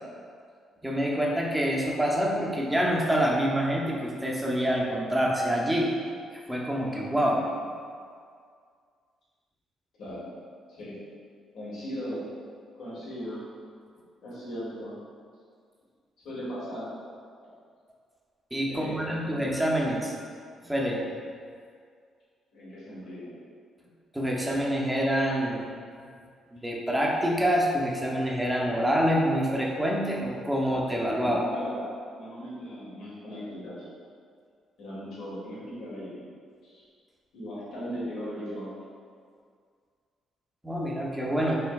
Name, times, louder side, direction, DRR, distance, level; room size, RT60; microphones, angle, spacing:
voice 1, 0.8-5.9 6.5-7.7 18.5-20.1 20.6-21.1 24.1-25.6 26.5-31.4 40.6-41.6, equal, 5° right, -3 dB, 0.6 m, -26 dB
voice 2, 10.0-10.3 10.7-11.0 11.5-12.3 12.7-13.5 14.2-15.0 16.2-16.9 18.7-19.4 22.5-23.4 31.2-31.8 32.1-33.9 34.8-36.3 36.6-36.8 37.3-38.7, equal, 80° left, -9 dB, 1.5 m, -37 dB
4.4 x 3.2 x 2.3 m, 2.1 s
cardioid pair, 90°, 0 cm